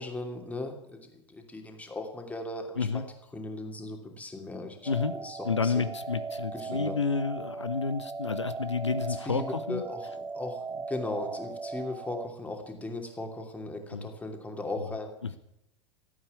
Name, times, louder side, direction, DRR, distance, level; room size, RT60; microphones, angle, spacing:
voice 1, 0.0-3.0 3.3-5.9 6.5-7.0 9.2-15.1, left 2 dB, 10° left, 3 dB, 2.8 m, -38 dB
sound 1, 4.8-12.3, right 4 dB, 15° right, 0.7 m, -38 dB
voice 2, 5.4-9.8 13.9-14.1 15.2-15.4, left 5 dB, 80° left, 11 dB, 0.7 m, -30 dB
15.0 x 8.6 x 9.6 m, 0.83 s
figure-of-eight pair, 85°, 15 cm